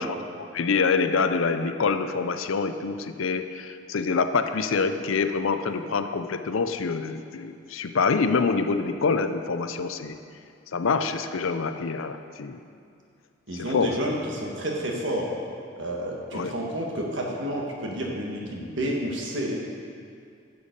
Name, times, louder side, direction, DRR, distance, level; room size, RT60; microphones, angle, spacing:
voice 1, 0.0-10.2 10.7-12.6 13.5-13.9 16.3-16.5, left 4 dB, 75° left, 9 dB, 0.5 m, -26 dB
voice 2, 13.5-15.3 15.8-19.6, right 1 dB, 65° right, -1 dB, 1.6 m, -30 dB
11.0 x 6.9 x 5.3 m, 2.4 s
head